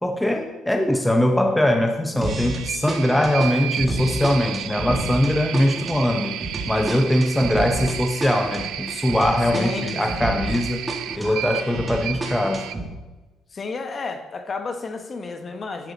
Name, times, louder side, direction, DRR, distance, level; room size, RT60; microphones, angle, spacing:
voice 1, 0.0-6.4 6.7-10.9 11.2-12.7, left 1 dB, 5° left, 4 dB, 0.7 m, -21 dB
sound 1, 2.2-2.6 2.9-10.6 10.9-12.9, right 2 dB, 20° right, 1.9 m, -30 dB
sound 2, 2.3-12.7, right 12 dB, 80° right, 0.4 m, -33 dB
voice 2, 9.5-10.4 13.5-15.9, left 4 dB, 35° left, 6 dB, 1.0 m, -32 dB
10.5 x 6.8 x 4.0 m, 1.1 s
cardioid pair, 110°, 0 cm